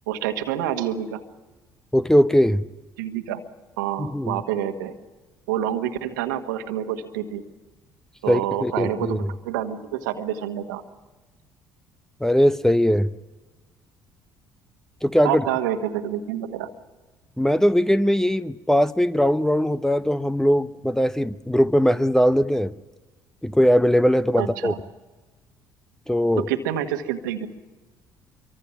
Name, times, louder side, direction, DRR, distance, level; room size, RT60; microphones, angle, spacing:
voice 1, 0.1-1.2 3.0-3.4 3.8-4.9 5.5-7.4 8.2-10.8 15.2-16.7 24.4-24.8 26.4-27.5, right 10 dB, 75° right, 1.5 m, -27 dB
voice 2, 1.9-2.6 4.0-4.4 8.3-9.2 12.2-13.1 15.0-15.4 17.4-22.7 23.4-24.7 26.1-26.5, equal, 5° left, 0.7 m, -20 dB
25.5 x 23.5 x 5.9 m
figure-of-eight pair, 55°, 10 cm